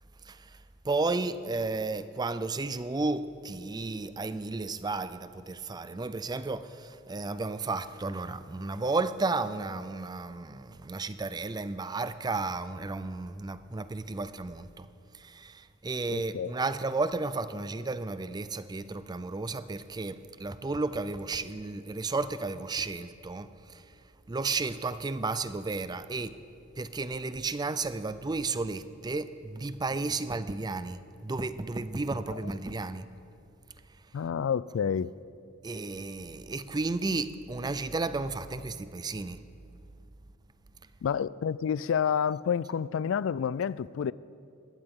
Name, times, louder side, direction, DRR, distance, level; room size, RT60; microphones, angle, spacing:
voice 1, 0.8-14.9 15.2-23.8 24.3-26.4 26.8-33.1 35.6-39.4, right 3 dB, 20° right, 0.4 m, -33 dB
voice 2, 16.1-16.5 32.3-32.4 34.1-35.1 41.0-44.1, left 7 dB, 70° left, 0.3 m, -29 dB
20.0 x 15.5 x 3.7 m
head